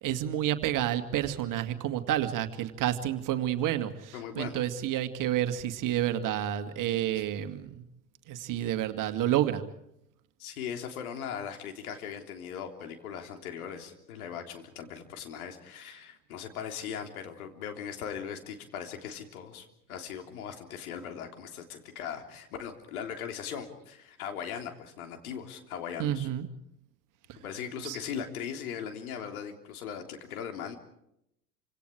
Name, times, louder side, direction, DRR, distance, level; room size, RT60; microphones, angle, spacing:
voice 1, 0.0-7.8 8.3-9.6 26.0-26.5 27.3-27.4 27.8-28.0, right 12 dB, 40° right, 8 dB, 2.2 m, -30 dB
voice 2, 4.1-4.6 10.4-26.3 27.4-30.8, left 8 dB, 65° left, 5 dB, 3.4 m, -39 dB
28.0 x 26.0 x 4.8 m, 0.79 s
figure-of-eight pair, 75°, 46 cm